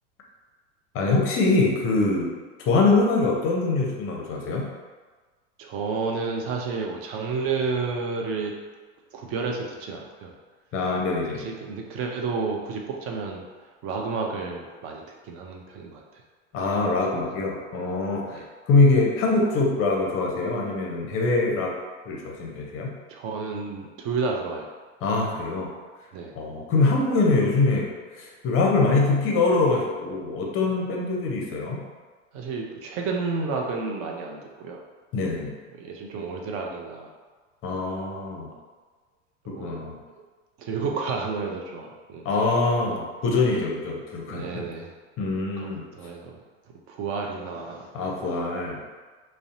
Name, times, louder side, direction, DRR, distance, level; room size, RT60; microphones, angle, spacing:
voice 1, 0.9-2.3 2.6-4.7 10.7-11.5 16.5-21.7 22.1-22.9 25.0-25.7 26.3-27.9 28.1-31.8 35.1-35.6 37.6-38.5 39.5-40.0 42.2-44.6 45.2-45.8 47.9-48.8, left 3 dB, 35° left, -1 dB, 0.6 m, -23 dB
voice 2, 5.6-8.5 9.1-10.3 11.3-13.4 13.8-16.2 18.3-18.4 23.1-24.7 26.1-26.3 32.3-34.8 35.8-37.1 39.5-39.8 40.6-42.3 44.3-44.9 45.3-46.4 46.9-47.9, right 4 dB, 40° right, 0 dB, 0.4 m, -31 dB
2.6 x 2.0 x 2.5 m, 1.4 s
hypercardioid pair, 100°, 37 cm